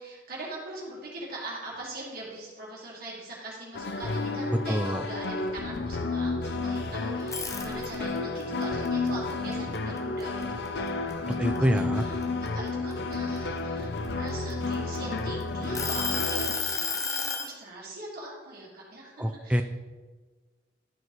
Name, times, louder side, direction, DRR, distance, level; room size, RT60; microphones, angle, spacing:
voice 1, 0.0-19.6, right 2 dB, 55° right, -5 dB, 2.2 m, -42 dB
sound 1, 3.7-16.5, left 3 dB, 60° left, 0.5 m, -31 dB
voice 2, 4.7-5.0 11.3-12.1 19.2-19.6, equal, 5° right, 6 dB, 0.4 m, -26 dB
sound 2, 7.2-8.2 8.6-10.4 10.9-11.1 11.6-13.4 14.1-15.2 15.7-17.5, left 5 dB, 15° left, 0.7 m, -31 dB
12.0 x 4.6 x 4.7 m, 1.3 s
head